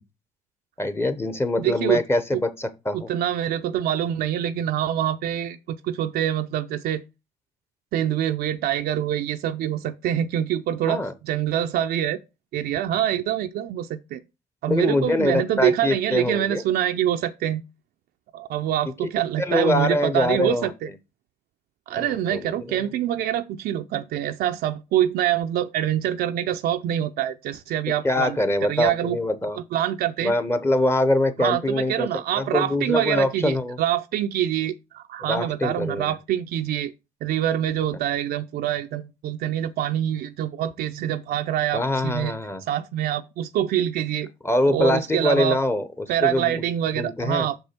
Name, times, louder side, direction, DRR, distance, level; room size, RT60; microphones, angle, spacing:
voice 1, 0.8-3.1 10.9-11.1 14.7-16.6 19.4-20.7 21.9-22.8 28.0-29.6 30.2-32.1 32.4-33.8 35.2-36.1 41.7-42.6 44.4-46.6 47.0-47.5, left 1 dB, 15° left, 0.7 m, -24 dB
voice 2, 1.6-2.0 2.3-2.4 2.9-7.0 7.9-12.2 12.5-14.2 14.6-17.6 18.3-20.9 21.9-28.4 28.7-29.2 29.6-30.3 31.4-36.9 37.2-42.3 42.7-44.3 44.6-45.6 46.1-47.6, right 11 dB, 65° right, 0.5 m, -25 dB
6.1 x 5.3 x 4.3 m
cardioid pair, 110°, 17 cm